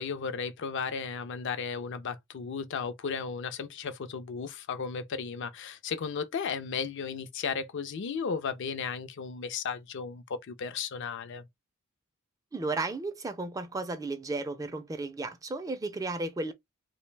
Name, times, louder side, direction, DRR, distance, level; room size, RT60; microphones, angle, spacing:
voice 1, 0.0-11.4, left 6 dB, 60° left, 0.4 m, -35 dB
voice 2, 12.5-16.5, right 3 dB, 15° right, 0.3 m, -34 dB
2.4 x 2.1 x 3.2 m
head